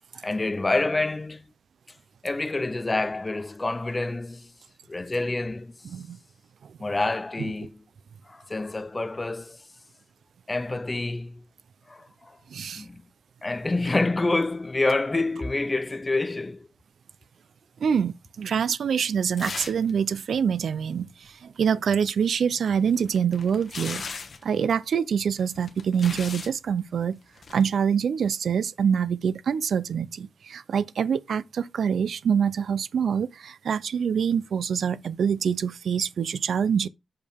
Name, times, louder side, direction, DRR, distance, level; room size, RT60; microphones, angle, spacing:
voice 1, 0.2-1.4 2.2-4.5 4.9-5.7 6.8-7.8 8.3-9.6 10.5-11.4 11.9-12.4 12.7-13.1 13.4-16.7, left 2 dB, 20° left, 0.5 m, -27 dB
voice 2, 5.8-6.2 6.6-6.8 7.4-7.5 12.5-12.8 17.8-24.0 24.4-27.2 27.5-36.9, right 7 dB, 75° right, 0.4 m, -25 dB
sound 1, 19.4-19.9 20.2-20.3 22.7-24.5 25.4-26.6 27.4-27.6, left 4 dB, 50° left, 1.2 m, -37 dB
6.7 x 5.4 x 3.5 m
wide cardioid pair, 115°, 0 cm